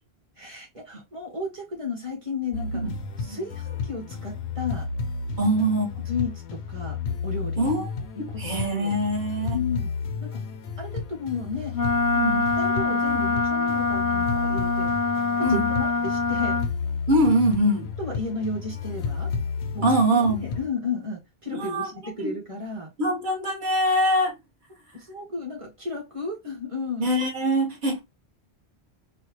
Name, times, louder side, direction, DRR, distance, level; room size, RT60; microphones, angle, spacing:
voice 1, 0.4-2.8 3.2-4.9 5.4-5.7 6.0-7.7 8.1-9.0 9.5-9.9 10.2-10.4 10.8-11.7 12.6-14.9 15.4-16.6 18.0-19.3 19.7-22.9 24.9-27.1, left 4 dB, 30° right, 1.5 m, -33 dB
sound 1, 2.5-20.7, left 5 dB, 80° left, 0.9 m, -32 dB
voice 2, 5.4-6.1 7.6-7.9 8.2-9.6 12.1-12.5 15.4-15.7 17.1-17.9 19.8-20.4 21.5-21.9 22.2-22.3 23.0-24.3 27.0-28.0, right 1 dB, 50° right, 1.4 m, -23 dB
Wind instrument woodwind instrument, 11.7-16.7, left 4 dB, 25° left, 0.7 m, -24 dB
4.1 x 2.3 x 2.9 m
omnidirectional pair, 1.1 m